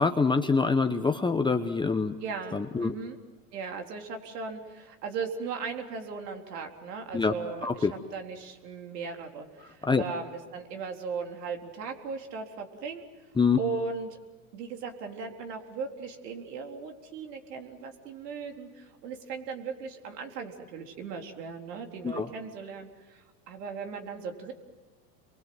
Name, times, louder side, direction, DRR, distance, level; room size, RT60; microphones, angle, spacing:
voice 1, 0.0-2.1 2.5-2.9 7.1-7.3 7.6-7.9 9.8-10.0 13.4-13.6 22.0-22.3, left 4 dB, 10° left, 6 dB, 0.9 m, -25 dB
voice 2, 2.2-3.2 3.5-13.0 13.6-14.2 14.5-24.5, right 5 dB, 85° right, 3 dB, 4.1 m, -38 dB
29.0 x 23.0 x 7.9 m, 1.3 s
supercardioid pair, 125°, 47 cm